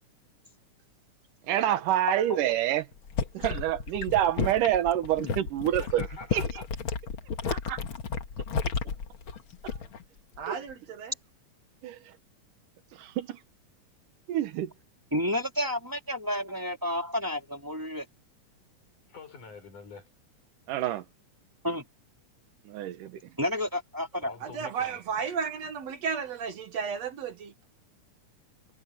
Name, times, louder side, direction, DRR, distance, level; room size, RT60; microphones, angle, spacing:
voice 1, 1.5-2.9 3.3-6.4 7.5-7.8 9.6-9.7 10.5-10.6 11.8-12.0 12.9-13.4 14.3-14.7 20.7-21.0 22.7-23.2, right 12 dB, 90° right, 2.8 m, -27 dB
sound 1, 2.9-10.0 10.3-10.7, left 5 dB, 50° left, 2.0 m, -33 dB
voice 2, 5.7-6.7 19.1-20.1 24.2-25.0, left 4 dB, 75° left, 8.1 m, -46 dB
voice 3, 10.4-11.1 24.4-27.5, right 6 dB, 60° right, 2.5 m, -33 dB
voice 4, 15.1-18.1 21.6-21.8 23.4-24.3, left 1 dB, 5° right, 3.0 m, -30 dB
omnidirectional pair, 3.6 m